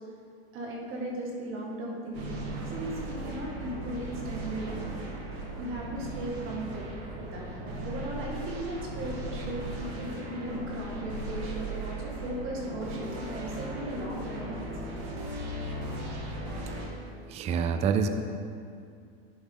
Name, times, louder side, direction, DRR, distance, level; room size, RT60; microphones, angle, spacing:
voice 1, 0.5-4.8 5.6-6.8 7.1-14.9, right 1 dB, 40° right, -2 dB, 1.9 m, -37 dB
sound 1, 2.1-16.9, right 1 dB, 80° right, 1.7 m, -37 dB
voice 2, 17.3-18.1, right 6 dB, 20° right, 8 dB, 0.3 m, -26 dB
11.0 x 4.7 x 3.7 m, 2.3 s
supercardioid pair, 120°, 31 cm